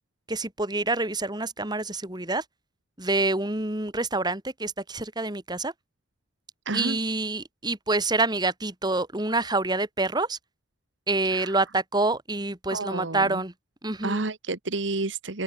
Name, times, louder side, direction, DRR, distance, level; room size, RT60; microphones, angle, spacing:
voice 1, 0.3-2.4 3.0-5.7 6.7-10.4 11.1-13.5 13.8-14.2, right 2 dB, 25° right, 3.0 m, -27 dB
voice 2, 6.7-7.0 11.3-11.6 12.7-13.4 14.0-15.4, right 2 dB, 90° right, 1.8 m, -30 dB
open air
head